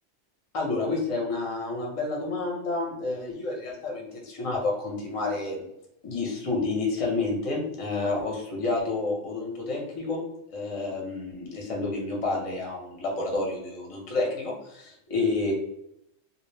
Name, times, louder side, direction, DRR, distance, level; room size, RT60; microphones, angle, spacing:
voice 1, 0.5-5.6 6.0-10.2 10.5-15.5, left 3 dB, 40° left, -1 dB, 0.5 m, -29 dB
2.2 x 2.0 x 3.2 m, 0.79 s
omnidirectional pair, 1.3 m